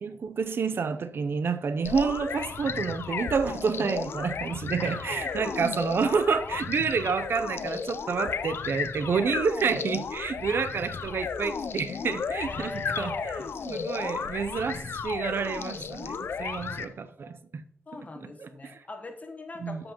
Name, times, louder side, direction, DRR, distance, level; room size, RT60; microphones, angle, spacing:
voice 1, 0.0-13.4 13.7-17.6 18.2-18.8 19.6-19.8, right 5 dB, 70° right, 0.5 m, -29 dB
sound 1, 1.8-16.9, left 6 dB, 75° left, 0.4 m, -34 dB
voice 2, 4.8-5.2 12.5-13.5 16.6-17.0 17.9-19.9, left 2 dB, 40° left, 1.0 m, -41 dB
12.5 x 5.3 x 2.9 m
wide cardioid pair, 100°, 4 cm